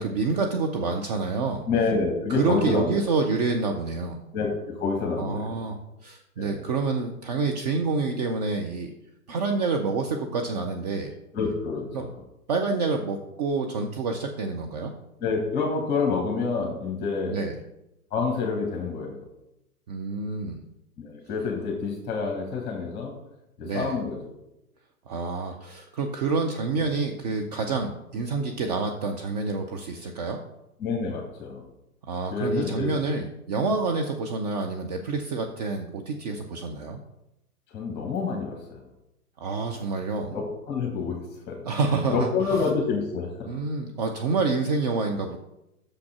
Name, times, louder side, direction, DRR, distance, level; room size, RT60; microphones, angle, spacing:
voice 1, 0.0-1.6 2.3-4.2 5.2-8.9 9.3-11.1 11.9-12.1 12.5-14.9 17.2-17.6 19.9-20.6 23.6-24.0 25.1-30.4 32.1-37.0 39.4-40.4 41.6-42.6 43.5-45.4, right 4 dB, 30° right, 3 dB, 0.6 m, -28 dB
voice 2, 1.7-3.0 4.3-5.5 6.4-6.6 11.3-12.2 15.2-17.4 18.1-19.2 21.0-23.1 23.6-24.2 30.8-31.6 32.3-33.0 37.7-38.8 40.3-41.2 41.5-41.6 42.1-43.6, left 4 dB, 20° left, 1 dB, 1.6 m, -28 dB
6.4 x 6.0 x 5.9 m, 0.89 s
figure-of-eight pair, 115°, 46 cm